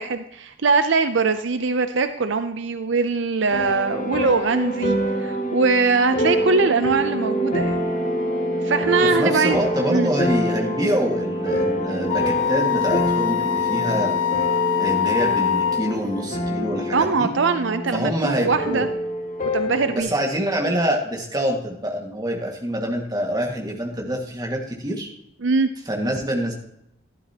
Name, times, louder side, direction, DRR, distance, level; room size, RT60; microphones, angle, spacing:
voice 1, 0.0-7.8 8.6-9.6 9.9-10.1 16.9-18.9 19.5-20.1 25.4-25.7, right 4 dB, 70° right, 9 dB, 0.6 m, -22 dB
sound 1, 3.5-20.0, equal, 40° left, 2.3 m, -26 dB
voice 2, 9.0-14.1 14.8-17.3 17.9-18.9 19.9-25.1 25.9-26.5, equal, 20° right, 0 dB, 1.9 m, -25 dB
Wind instrument woodwind instrument, 12.1-15.9, left 9 dB, 70° left, 0.5 m, -23 dB
12.5 x 11.5 x 3.0 m, 0.78 s
head